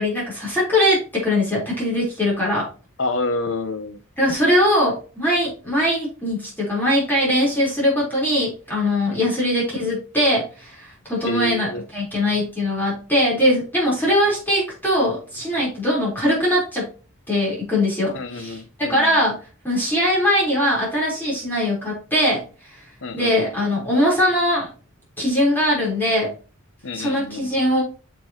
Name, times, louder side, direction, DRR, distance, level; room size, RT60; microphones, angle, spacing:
voice 1, 0.0-2.7 4.2-16.9 17.3-19.3 19.6-22.4 23.1-24.7 25.2-26.3 26.9-27.8, left 1 dB, 10° left, -6 dB, 4.0 m, -21 dB
voice 2, 3.0-4.0 9.1-9.2 11.3-11.8 18.1-19.2 23.0-23.5 26.8-27.5, left 3 dB, 65° left, 11 dB, 0.9 m, -28 dB
7.5 x 6.9 x 3.0 m, 0.35 s
head